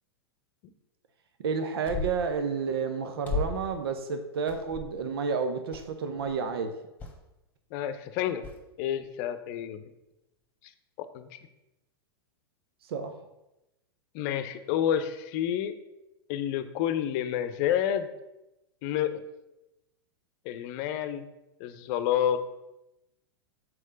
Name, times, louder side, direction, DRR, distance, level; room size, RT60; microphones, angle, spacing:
voice 1, 1.4-6.7 12.8-13.1, right 5 dB, 70° right, 7 dB, 0.7 m, -30 dB
sound 1, 1.8-2.3 3.2-3.7 4.5-5.0 5.7-5.9 6.2-6.4 7.0-7.2 8.4-8.6, left 3 dB, 15° left, 1.3 m, -34 dB
voice 2, 7.7-8.4 8.8-9.9 11.0-11.3 14.1-15.7 16.3-18.1 18.8-19.2 20.4-21.2 21.6-22.4, left 10 dB, 45° left, 11 dB, 0.7 m, -29 dB
6.4 x 4.4 x 5.1 m, 0.94 s
hypercardioid pair, 100°, 13 cm